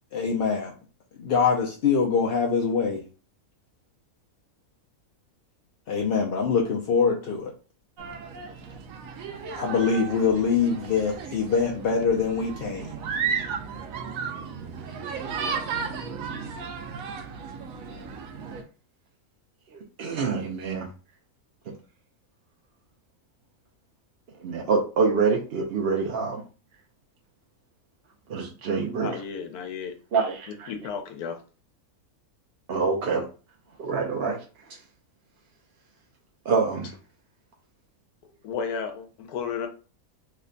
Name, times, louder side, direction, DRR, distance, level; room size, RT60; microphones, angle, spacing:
voice 1, 0.1-0.7 1.2-3.0 5.9-7.5 9.5-12.9, left 5 dB, 65° left, 0.6 m, -24 dB
sound 1, 8.0-18.6, right 6 dB, 75° right, 1.0 m, -34 dB
voice 2, 20.0-20.9 21.7-21.8 24.4-26.4 28.3-29.1 30.1-30.7 32.7-33.2 33.8-34.4 36.5-36.9, right 4 dB, 60° right, 0.7 m, -25 dB
voice 3, 28.9-29.9 30.5-31.4 38.4-39.7, left 6 dB, 90° left, 1.2 m, -33 dB
3.2 x 2.2 x 3.7 m
omnidirectional pair, 1.5 m